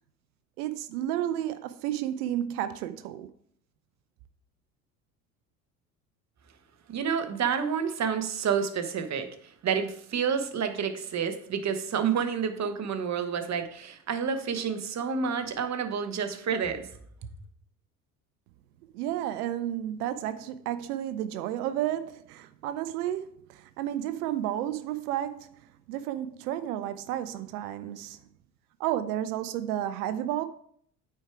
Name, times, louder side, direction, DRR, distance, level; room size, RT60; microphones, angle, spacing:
voice 1, 0.6-3.3 18.9-25.6 25.9-28.2 28.8-30.4, right 12 dB, 75° right, 0.7 m, -32 dB
voice 2, 6.9-16.9, right 7 dB, 35° right, 1.1 m, -29 dB
8.7 x 4.7 x 4.7 m
hypercardioid pair, 70°, 46 cm